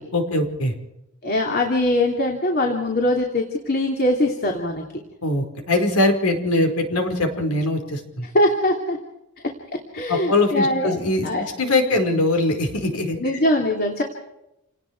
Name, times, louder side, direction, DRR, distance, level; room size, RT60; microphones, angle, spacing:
voice 1, 0.1-0.7 5.2-8.3 10.1-13.2, left 2 dB, 90° left, 5 dB, 4.8 m, -22 dB
voice 2, 1.2-4.8 8.3-9.0 9.9-11.0 11.2-11.5 13.2-14.0, left 1 dB, 45° left, 1 dB, 2.9 m, -21 dB
28.5 x 19.0 x 4.8 m, 0.88 s
head